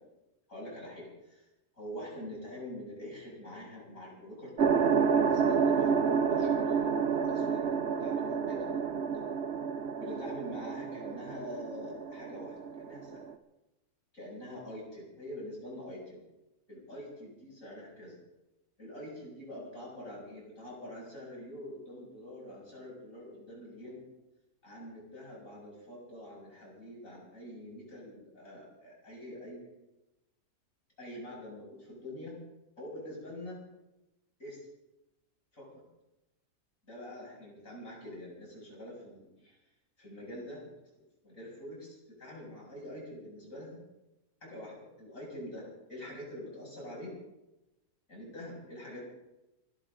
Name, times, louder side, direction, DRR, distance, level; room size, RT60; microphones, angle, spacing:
voice 1, 0.5-1.5 1.8-7.7 8.0-9.2 10.0-13.2 14.1-16.2 16.7-18.2 18.8-24.1 24.6-29.6 31.0-32.3 32.8-33.6 34.4-34.7 35.5-35.7 36.8-39.6 40.0-40.6 41.2-43.8 44.4-45.6 45.9-47.1 48.1-49.0, left 1 dB, 55° left, -4 dB, 7.8 m, -45 dB
sound 1, 4.6-13.3, right 6 dB, 50° right, 1.0 m, -29 dB
28.0 x 12.5 x 3.9 m, 0.96 s
omnidirectional pair, 1.7 m